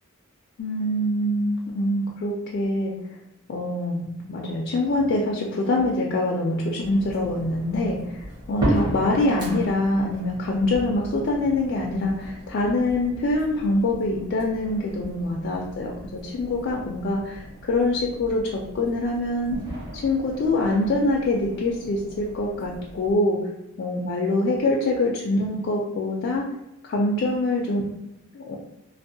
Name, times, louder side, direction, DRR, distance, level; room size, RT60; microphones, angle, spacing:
voice 1, 0.6-2.9 3.5-19.6 19.9-23.4 23.8-26.4 26.8-27.8 28.3-28.6, left 2 dB, 55° left, -2 dB, 0.3 m, -24 dB
sound 1, 6.8-23.1, right 1 dB, 20° right, 0.8 m, -35 dB
2.6 x 2.0 x 2.6 m, 0.90 s
head